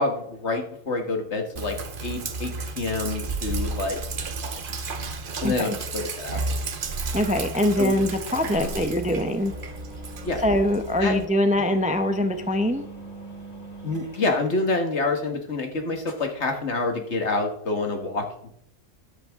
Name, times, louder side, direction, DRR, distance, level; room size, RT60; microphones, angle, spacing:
voice 1, 0.0-4.0 4.4-4.6 5.4-6.4 7.8-7.9 8.6-8.7 10.2-10.4 11.0-11.2 13.8-18.3, left 2 dB, 55° left, 4 dB, 1.9 m, -27 dB
Sink (filling or washing), 1.6-11.3, right 3 dB, 45° right, 1.0 m, -32 dB
sound 1, 6.3-6.5 7.0-7.6 7.9-8.0 8.2-14.5, right 2 dB, 20° left, 5.7 m, -43 dB
voice 2, 7.1-9.5 10.4-12.8, left 1 dB, 5° right, 7 dB, 0.7 m, -23 dB
13.0 x 10.5 x 3.6 m, 0.69 s
omnidirectional pair, 1.4 m